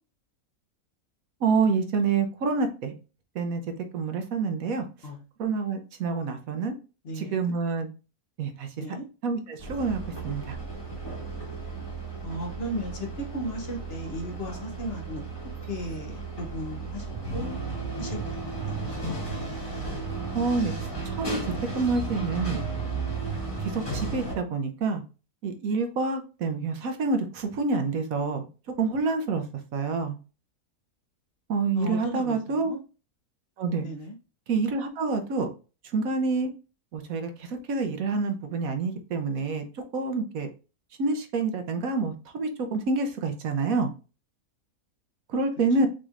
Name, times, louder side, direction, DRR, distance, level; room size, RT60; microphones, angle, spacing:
voice 1, 1.4-2.9 3.3-3.6 3.9-4.8 5.4-6.7 7.2-7.9 8.4-8.7 9.2-10.6 20.3-21.4 21.7-22.6 23.7-25.0 25.4-28.5 28.8-29.4 29.7-30.2 31.5-32.7 33.6-33.9 34.5-35.5 35.9-36.5 36.9-39.6 39.9-40.5 41.0-43.9 45.3-45.9, right 4 dB, 70° right, 6 dB, 1.1 m, -27 dB
voice 2, 7.0-7.4 8.8-9.1 12.2-15.3 15.7-17.1 17.3-17.5 18.0-18.9 31.7-32.8 33.8-34.1 45.8-45.9, equal, 45° left, 2 dB, 1.0 m, -35 dB
sound 1, 9.6-24.3, right 3 dB, 15° left, 1.5 m, -35 dB
sound 2, 17.1-24.2, right 6 dB, 25° right, 0.7 m, -36 dB
6.2 x 3.2 x 2.5 m, 0.33 s
omnidirectional pair, 1.6 m